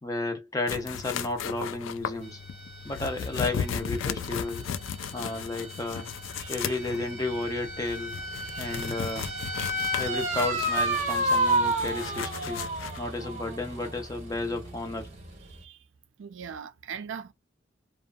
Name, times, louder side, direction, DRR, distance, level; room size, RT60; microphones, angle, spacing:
voice 1, 0.0-2.4 2.8-4.7 5.1-6.1 6.5-8.2 8.6-9.3 10.0-12.7 13.0-15.1, left 2 dB, 20° left, 0.4 m, -32 dB
sound 1, 0.7-13.0, left 7 dB, 85° left, 0.3 m, -36 dB
sound 2, 2.2-15.6, right 1 dB, 35° right, 0.7 m, -32 dB
voice 2, 6.4-6.7 8.4-8.8 15.4-15.9 16.2-17.3, right 7 dB, 80° right, 0.4 m, -41 dB
2.6 x 2.4 x 2.2 m
head